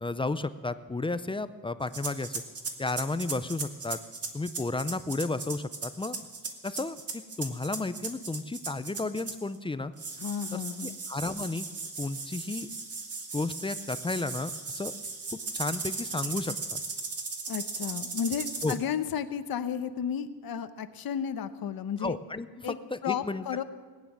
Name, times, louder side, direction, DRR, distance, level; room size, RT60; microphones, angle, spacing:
voice 1, 0.0-2.4 2.8-4.0 4.3-6.2 6.6-7.0 7.4-9.9 10.5-11.7 12.0-12.7 13.3-15.0 15.5-16.8 18.6-18.8 22.0-23.6, left 3 dB, 15° left, 13 dB, 0.4 m, -33 dB
sound 1, 1.9-9.5 10.0-18.8, right 4 dB, 40° right, 1.7 m, -37 dB
voice 2, 10.2-11.0 17.5-22.2 22.6-22.8 23.0-23.6, left 8 dB, 65° left, 11 dB, 1.0 m, -33 dB
20.0 x 9.4 x 7.5 m, 1.5 s
wide cardioid pair, 150°, 39 cm